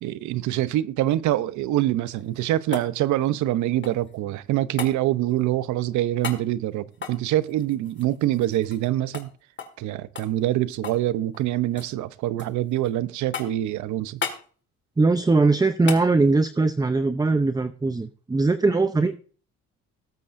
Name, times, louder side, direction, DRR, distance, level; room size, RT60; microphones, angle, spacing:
voice 1, 0.0-9.3 9.8-14.2, right 14 dB, 75° right, 0.8 m, -25 dB
sound 1, 2.1-4.2 4.8-5.0 6.2-6.5 6.9-8.9 9.1-9.3 9.6-9.8 10.2-11.1 11.3-11.9 12.4-12.9 13.3-13.7 14.2-14.5 15.9-16.1 18.4-18.5, left 6 dB, 40° left, 1.9 m, -35 dB
voice 2, 15.0-19.1, right 3 dB, 15° right, 0.6 m, -21 dB
18.5 x 8.5 x 2.6 m
supercardioid pair, 80°, 30 cm